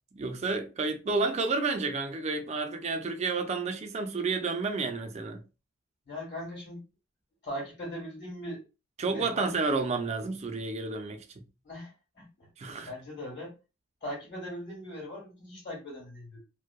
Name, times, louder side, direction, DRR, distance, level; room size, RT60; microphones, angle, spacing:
voice 1, 0.1-5.4 9.0-11.4 12.6-12.9, right 3 dB, 35° right, 0.4 m, -30 dB
voice 2, 6.1-6.8 7.4-8.6 9.0-9.5 11.6-12.5 12.8-13.5 14.0-16.4, equal, 60° left, 1.5 m, -40 dB
2.6 x 2.1 x 2.2 m
head